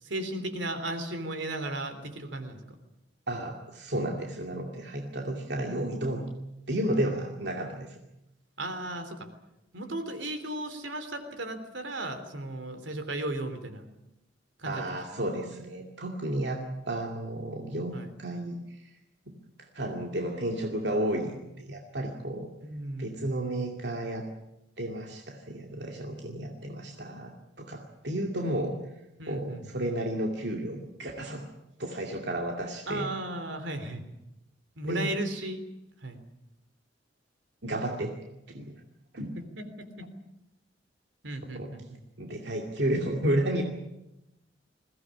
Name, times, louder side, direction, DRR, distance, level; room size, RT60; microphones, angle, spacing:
voice 1, 0.0-2.6 8.6-9.3 9.7-13.9 14.6-14.8 15.1-15.2 17.9-18.1 22.6-23.2 29.2-29.8 32.9-34.0 34.8-35.6 36.0-36.2 39.6-40.1 41.2-42.0, right 1 dB, 80° right, 9 dB, 3.3 m, -35 dB
voice 2, 3.3-6.2 6.7-8.0 14.6-18.9 19.3-19.4 19.7-22.5 23.0-24.3 24.8-28.8 29.3-31.4 31.8-33.1 34.8-35.1 37.6-38.2 38.5-38.8 39.1-39.3 41.4-41.7 42.2-43.6, right 1 dB, 65° right, 1 dB, 2.5 m, -32 dB
21.5 x 17.5 x 9.9 m, 0.91 s
head